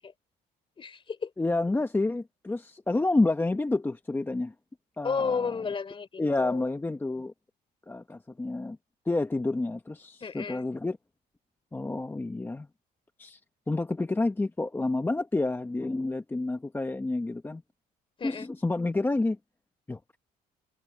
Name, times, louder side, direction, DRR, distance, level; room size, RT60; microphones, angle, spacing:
voice 1, 0.8-1.3 5.0-6.6 10.2-10.7 18.2-18.5, left 5 dB, 30° left, 3.4 m, -32 dB
voice 2, 1.4-4.5 5.0-5.6 6.2-7.3 7.9-8.8 9.1-11.0 11.7-12.7 13.2-13.4 13.7-17.6 18.2-19.4 19.9-20.0, left 2 dB, 15° left, 1.0 m, -29 dB
cardioid pair, 110°, 17 cm